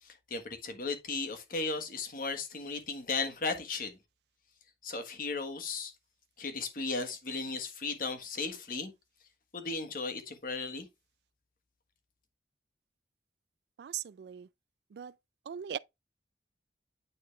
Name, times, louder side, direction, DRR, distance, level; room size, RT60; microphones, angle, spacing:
voice 1, 0.0-4.0 4.8-5.9 6.4-8.9 9.5-10.9, left 4 dB, 50° left, 1.4 m, -36 dB
voice 2, 13.8-14.5 15.0-15.1 15.5-15.8, right 9 dB, 65° right, 0.3 m, -39 dB
9.2 x 4.0 x 3.2 m
head